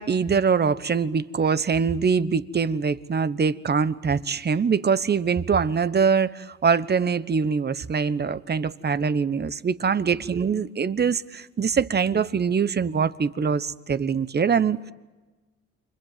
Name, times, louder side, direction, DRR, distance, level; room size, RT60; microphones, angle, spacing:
voice 1, 0.0-14.9, right 6 dB, 35° right, 1.1 m, -23 dB
29.5 x 25.5 x 7.5 m
cardioid pair, 90°, 30 cm